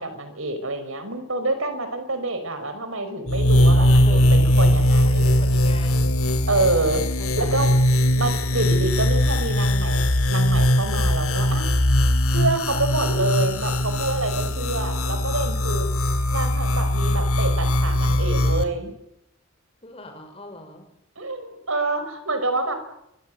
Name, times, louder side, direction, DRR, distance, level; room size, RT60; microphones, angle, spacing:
voice 1, 0.0-5.3 6.5-7.0 7.4-7.7 8.1-11.7 12.3-15.9 16.3-18.9 21.2-22.7, right 2 dB, 70° right, 9 dB, 5.5 m, -27 dB
sound 1, 3.3-18.6, left 1 dB, 80° left, 2.7 m, -20 dB
voice 2, 3.7-4.3 5.0-6.1 7.2-7.8 19.8-20.9, left 1 dB, 25° left, 6 dB, 5.3 m, -41 dB
27.5 x 23.5 x 8.0 m, 0.83 s
head